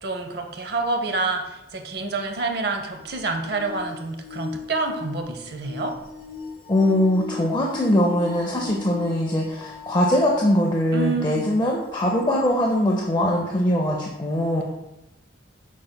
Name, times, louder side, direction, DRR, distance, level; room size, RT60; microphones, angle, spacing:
voice 1, 0.0-6.0 10.9-11.5, right 3 dB, 60° right, 5 dB, 0.6 m, -28 dB
sound 1, 3.0-10.6 11.3-11.4 12.4-12.5, left 5 dB, 85° left, 0.6 m, -38 dB
voice 2, 6.7-14.6, left 1 dB, 20° left, -1 dB, 0.4 m, -21 dB
6.2 x 3.8 x 2.2 m, 0.95 s
head